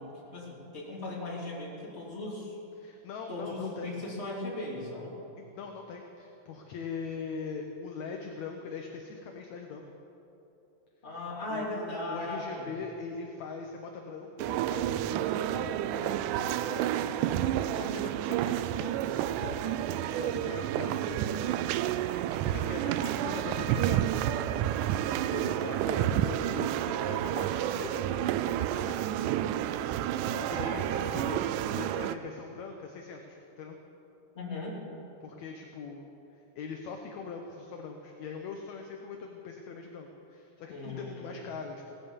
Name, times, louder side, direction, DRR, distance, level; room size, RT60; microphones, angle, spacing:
voice 1, 0.0-2.6 3.3-5.1 11.0-12.7 21.1-21.5 34.3-34.8 40.7-41.4, left 2 dB, 20° left, -4 dB, 3.1 m, -38 dB
voice 2, 2.8-4.0 5.4-9.8 11.5-19.8 20.1-21.3 21.8-22.1 22.4-24.8 25.3-29.5 30.0-31.4 31.8-33.8 35.2-41.9, left 5 dB, 70° left, 3 dB, 2.0 m, -42 dB
sound 1, 14.4-32.2, right 11 dB, 80° right, 2.0 m, -30 dB
17.5 x 10.5 x 7.3 m, 3.0 s
omnidirectional pair, 3.8 m